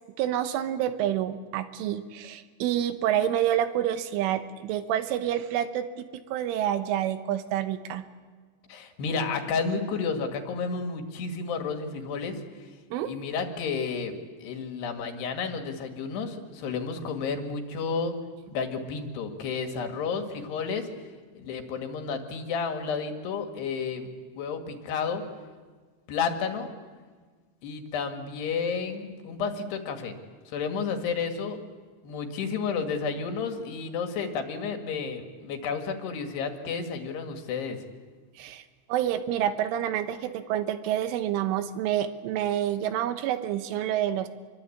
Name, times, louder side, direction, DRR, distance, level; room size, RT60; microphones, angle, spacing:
voice 1, 0.2-8.1 12.9-13.1 38.4-38.6 38.9-44.3, right 11 dB, 90° right, 9 dB, 3.7 m, -28 dB
voice 2, 8.7-12.7 13.1-18.2 18.5-20.9 21.4-24.1 24.4-25.2 26.1-26.7 27.6-30.1 30.5-31.6 32.0-37.8, left 5 dB, 65° left, 5 dB, 3.7 m, -31 dB
26.5 x 23.5 x 8.6 m, 1.5 s
omnidirectional pair, 5.5 m